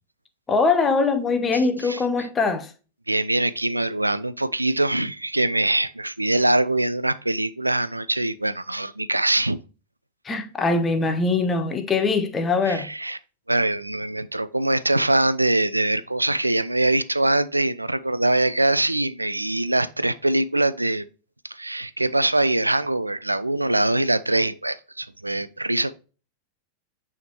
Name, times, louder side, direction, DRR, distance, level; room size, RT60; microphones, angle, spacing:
voice 1, 0.5-2.7 10.2-12.9, left 4 dB, 20° left, 0.8 m, -22 dB
voice 2, 3.1-9.6 12.7-13.2 13.5-21.1 21.4-25.9, right 2 dB, 85° right, 0.3 m, -23 dB
9.2 x 3.6 x 2.8 m
figure-of-eight pair, 90°, 0 cm